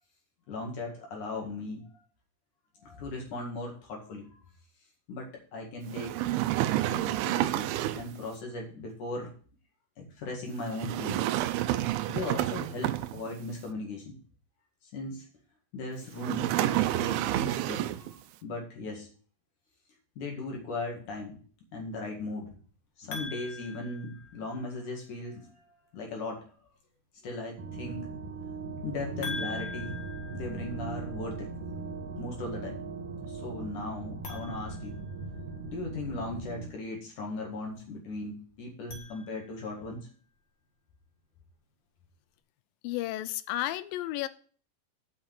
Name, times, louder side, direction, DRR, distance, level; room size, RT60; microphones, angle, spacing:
voice 1, 0.5-1.8 2.8-4.4 5.1-6.3 6.9-9.3 10.0-11.2 12.1-14.2 14.8-15.3 15.7-19.1 20.2-21.4 21.7-22.5 23.0-25.5 25.9-26.5 27.2-28.1 28.8-30.0 30.3-31.5 32.2-32.8 33.3-35.0 35.7-40.1, left 2 dB, 60° left, 0 dB, 3.2 m, -38 dB
sound 1, 5.9-8.2 10.7-13.4 16.2-18.1, right 14 dB, 85° right, 2.4 m, -29 dB
sound 2, 23.1-24.8 29.2-31.2 34.1-35.7 38.6-39.9, left 4 dB, 40° left, 1.8 m, -43 dB
sound 3, 27.6-36.7, right 4 dB, 65° right, 2.5 m, -39 dB
voice 2, 42.8-44.3, left 14 dB, 80° left, 15 dB, 2.1 m, -32 dB
7.3 x 6.5 x 7.5 m, 0.42 s
omnidirectional pair, 4.4 m